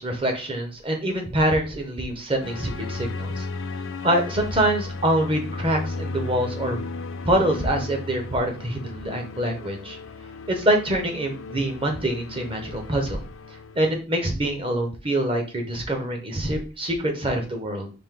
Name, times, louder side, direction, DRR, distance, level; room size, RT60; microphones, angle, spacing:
voice 1, 0.0-3.4 4.0-6.8 7.2-10.0 10.5-13.2 13.8-17.9, right 1 dB, 25° right, 3 dB, 0.9 m, -25 dB
sound 1, 2.4-14.0, left 3 dB, 90° left, 0.5 m, -35 dB
5.2 x 2.7 x 3.8 m, 0.34 s
head